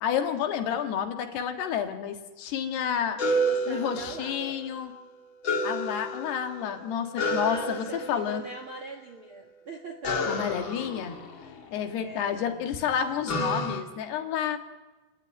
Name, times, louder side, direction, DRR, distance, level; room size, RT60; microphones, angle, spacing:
voice 1, 0.0-3.2 3.7-4.9 5.6-8.4 10.3-11.2 11.7-14.6, left 8 dB, 75° left, 6 dB, 3.7 m, -30 dB
sound 1, 3.2-4.6 5.4-6.6 7.2-8.4 10.0-12.1 13.3-13.8, equal, 35° left, 2.2 m, -30 dB
voice 2, 3.3-4.6 7.2-10.3 12.0-12.4, right 2 dB, 50° right, 5 dB, 1.6 m, -41 dB
29.0 x 19.5 x 9.1 m, 1.2 s
omnidirectional pair, 4.9 m